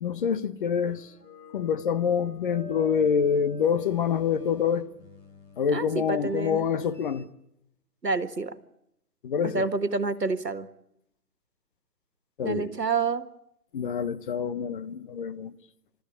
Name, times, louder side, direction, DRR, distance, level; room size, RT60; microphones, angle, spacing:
voice 1, 0.0-1.1 1.5-4.9 5.6-7.3 9.2-9.6 12.4-12.7 13.7-15.5, left 7 dB, 35° left, 1.1 m, -26 dB
sound 1, 0.8-7.2, equal, 90° left, 3.9 m, -48 dB
voice 2, 5.7-6.7 8.0-8.6 9.4-10.7 12.4-13.3, right 4 dB, 90° right, 1.8 m, -28 dB
29.5 x 13.5 x 9.9 m
figure-of-eight pair, 135°, 47 cm